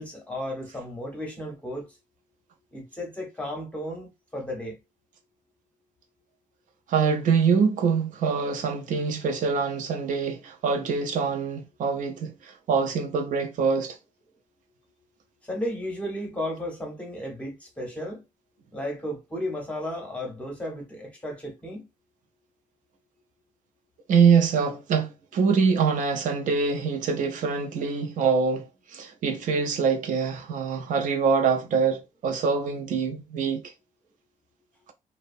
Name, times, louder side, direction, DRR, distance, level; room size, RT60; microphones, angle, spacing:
voice 1, 0.0-1.9 2.7-4.8 15.5-18.2 18.7-21.9, left 1 dB, 10° left, 0.7 m, -34 dB
voice 2, 6.9-14.0 24.1-33.7, right 5 dB, 70° right, 0.5 m, -24 dB
2.8 x 2.0 x 2.4 m
wide cardioid pair, 180°, 14 cm